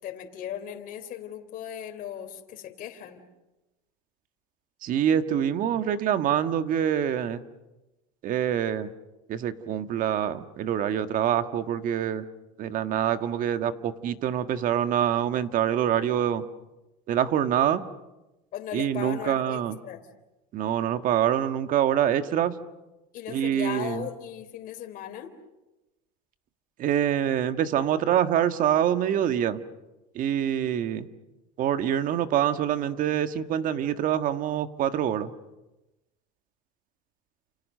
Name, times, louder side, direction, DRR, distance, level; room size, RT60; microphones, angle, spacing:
voice 1, 0.0-3.2 18.5-20.0 23.1-25.3, left 10 dB, 45° left, 5 dB, 3.6 m, -37 dB
voice 2, 4.8-7.4 8.2-8.9 9.3-12.3 12.6-16.4 17.1-17.9 18.7-19.8 20.5-22.6 23.3-24.0 26.8-29.6 30.1-31.1 31.6-35.3, right 10 dB, 45° right, 10 dB, 1.6 m, -25 dB
30.0 x 28.5 x 6.6 m, 1.0 s
supercardioid pair, 130°, 20 cm